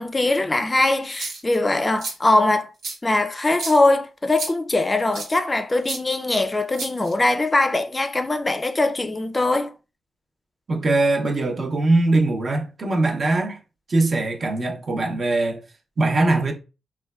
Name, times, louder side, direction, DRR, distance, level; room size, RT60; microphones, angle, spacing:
voice 1, 0.0-2.7 3.0-9.7, left 2 dB, 25° left, 0.4 m, -21 dB
sound 1, 1.0-1.6 2.0-2.1 2.8-3.0 3.5-3.8 4.4-4.5 5.1-5.3 5.8-6.0 6.7-7.3, right 3 dB, 85° right, 0.9 m, -31 dB
voice 2, 10.7-13.6 13.9-15.6 16.0-16.5, right 2 dB, 50° right, 0.7 m, -21 dB
3.1 x 2.2 x 2.3 m
supercardioid pair, 55°, 0 cm